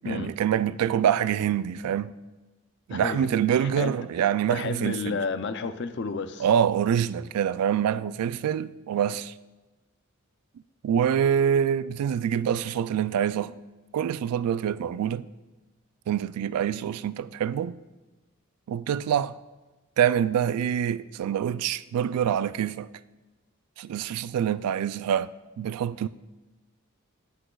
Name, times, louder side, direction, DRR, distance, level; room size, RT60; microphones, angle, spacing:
voice 1, 0.0-2.1 2.9-5.2 6.4-9.3 10.8-13.5 13.9-15.3 16.1-17.8 18.7-19.3 20.0-22.9 23.8-25.3 25.6-26.1, right 9 dB, 90° right, 0.3 m, -25 dB
voice 2, 2.9-3.9 4.5-6.5, left 4 dB, 50° left, 0.5 m, -32 dB
15.5 x 6.1 x 2.3 m
head